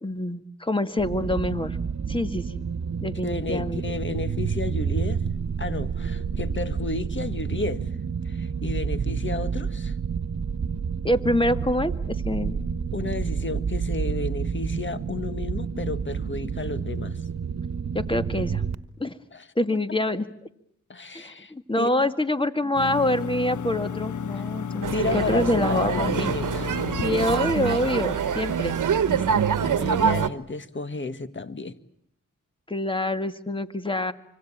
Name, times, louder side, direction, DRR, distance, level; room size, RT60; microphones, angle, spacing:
voice 1, 0.0-1.8 2.1-2.6 3.0-3.8 11.0-11.9 12.3-12.6 17.9-18.6 19.0-19.2 19.6-20.3 21.1-26.3 27.0-28.8 32.7-34.1, left 1 dB, 15° left, 1.9 m, -26 dB
sound 1, 1.0-18.7, right 6 dB, 60° right, 1.4 m, -29 dB
voice 2, 3.2-5.2 5.6-7.9 8.2-10.0 12.9-17.2 19.3-19.5 20.9-22.1 24.9-26.7 29.1-31.8, left 3 dB, 40° left, 1.7 m, -32 dB
sound 2, 22.7-28.9, left 7 dB, 70° left, 1.1 m, -33 dB
sound 3, 24.8-30.3, right 7 dB, 80° right, 1.2 m, -25 dB
25.5 x 25.0 x 8.7 m
cardioid pair, 65°, 31 cm